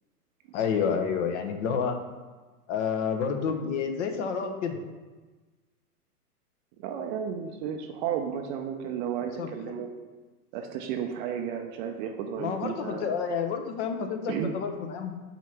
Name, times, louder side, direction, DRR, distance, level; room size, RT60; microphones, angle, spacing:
voice 1, 0.5-2.0 2.7-4.8 9.4-9.9 12.4-15.1, left 6 dB, 50° left, 5 dB, 1.1 m, -29 dB
voice 2, 6.8-9.9 10.5-13.2 14.3-14.5, right 8 dB, 30° right, 4 dB, 0.6 m, -33 dB
5.6 x 4.5 x 5.9 m, 1.3 s
hypercardioid pair, 115°, 47 cm